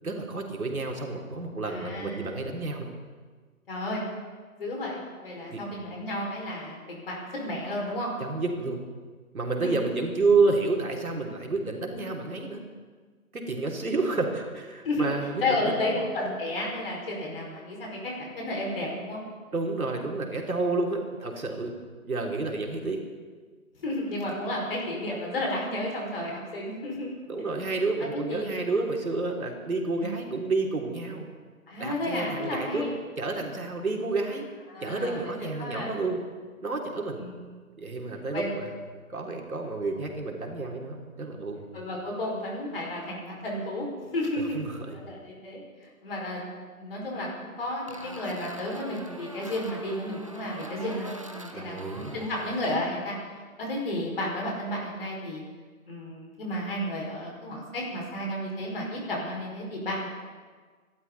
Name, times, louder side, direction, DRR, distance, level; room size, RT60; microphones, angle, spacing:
voice 1, 0.0-2.9 5.5-5.6 8.2-8.8 9.3-12.6 13.3-16.0 19.5-21.7 22.0-23.0 27.3-31.3 31.8-32.9 33.2-34.5 34.8-36.2 36.6-37.2 37.8-38.7 39.1-41.7 44.4-45.0 51.5-52.2, right 3 dB, 75° right, 1 dB, 3.4 m, -30 dB
voice 2, 1.7-2.3 3.7-4.0 4.5-8.1 9.6-9.7 14.8-15.1 15.4-19.2 23.8-27.1 28.1-28.5 30.0-30.2 31.7-32.9 34.7-35.3 35.6-36.0 37.2-37.4 38.3-38.6 41.7-43.9 44.1-44.6 44.9-46.4 46.7-53.2 53.6-55.4 55.9-60.1, left 1 dB, 40° left, -2 dB, 5.5 m, -32 dB
sound 1, 47.9-52.8, right 1 dB, 25° right, 0.6 m, -43 dB
27.0 x 12.5 x 4.1 m, 1.5 s
figure-of-eight pair, 160°, 43 cm